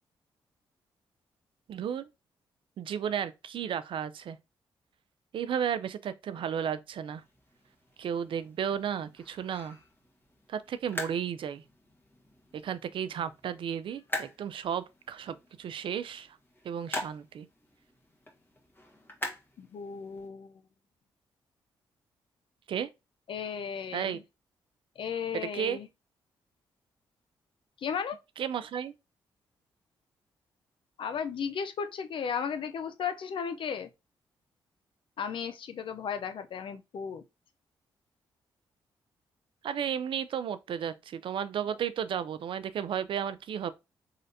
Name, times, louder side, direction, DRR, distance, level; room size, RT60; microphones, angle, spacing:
voice 1, 1.7-2.1 2.8-4.4 5.3-7.2 8.0-9.8 10.5-11.6 12.6-16.3 16.6-17.5 22.7-22.9 23.9-24.2 25.5-25.8 28.4-28.9 39.6-43.7, right 8 dB, 65° right, 0.4 m, -33 dB
sound 1, 7.0-20.3, left 1 dB, 20° left, 1.4 m, -44 dB
voice 2, 19.6-20.6 23.3-24.2 25.0-25.9 27.8-28.2 31.0-33.9 35.2-37.2, left 7 dB, 65° left, 0.6 m, -35 dB
3.8 x 3.2 x 2.7 m
supercardioid pair, 55°, 10 cm